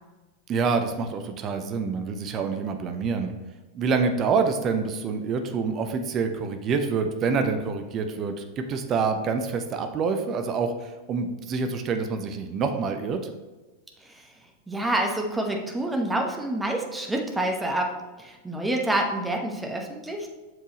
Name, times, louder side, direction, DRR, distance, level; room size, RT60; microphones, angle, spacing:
voice 1, 0.5-3.3 3.7-13.2, right 5 dB, 30° right, 6 dB, 0.8 m, -27 dB
voice 2, 14.0-14.3 14.7-20.3, right 1 dB, 10° right, 2 dB, 1.2 m, -28 dB
7.7 x 6.8 x 3.0 m, 1.2 s
figure-of-eight pair, 90°, 0 cm